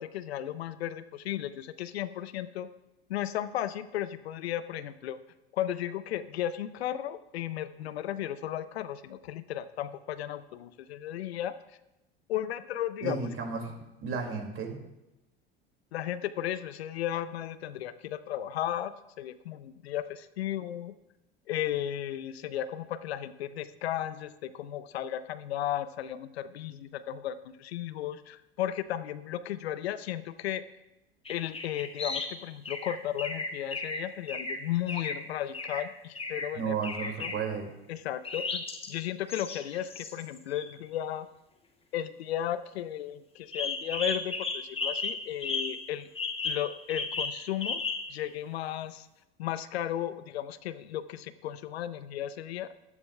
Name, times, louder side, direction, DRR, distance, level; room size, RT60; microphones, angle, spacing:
voice 1, 0.0-2.7 3.1-5.2 5.5-11.5 12.3-13.3 15.9-20.9 21.5-30.6 31.3-36.7 37.0-37.3 37.9-41.3 41.9-46.1 46.4-47.8 48.1-49.1 49.4-52.7, left 11 dB, 80° left, 14 dB, 0.6 m, -35 dB
voice 2, 13.0-13.7 14.0-14.8 36.5-37.7, right 5 dB, 40° right, 3 dB, 2.4 m, -33 dB
sound 1, 31.2-32.4 32.6-35.2 35.5-35.8 36.1-36.5 36.8-37.4 38.2-38.9 39.3-40.7 43.5-45.9 46.1-48.2, left 3 dB, 20° left, 1.3 m, -34 dB
15.5 x 11.0 x 2.3 m, 0.96 s
hypercardioid pair, 75°, 31 cm